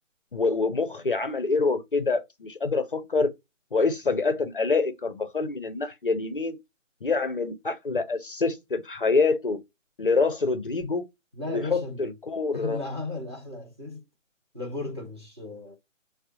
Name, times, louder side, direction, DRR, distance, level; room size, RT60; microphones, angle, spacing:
voice 1, 0.3-3.3 3.7-6.6 7.0-9.6 10.0-11.1 11.5-12.8, left 4 dB, 45° left, 0.5 m, -26 dB
voice 2, 11.3-12.2 12.5-14.1 14.5-15.8, left 2 dB, 20° right, 0.6 m, -35 dB
3.5 x 2.1 x 2.8 m
figure-of-eight pair, 160°, 38 cm